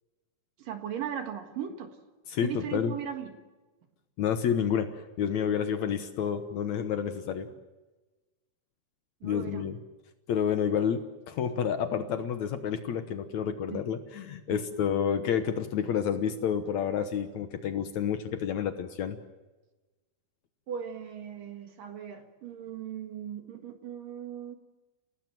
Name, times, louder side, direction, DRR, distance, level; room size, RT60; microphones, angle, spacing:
voice 1, 0.6-2.0 2.4-3.4 9.2-9.7 13.7-13.8 14.5-14.6 20.7-24.6, right 9 dB, 60° right, 6 dB, 3.0 m, -38 dB
voice 2, 2.3-3.0 4.2-7.5 9.2-9.8 10.3-19.2, left 8 dB, 75° left, 9 dB, 1.6 m, -29 dB
30.0 x 18.5 x 7.7 m, 1.2 s
omnidirectional pair, 5.0 m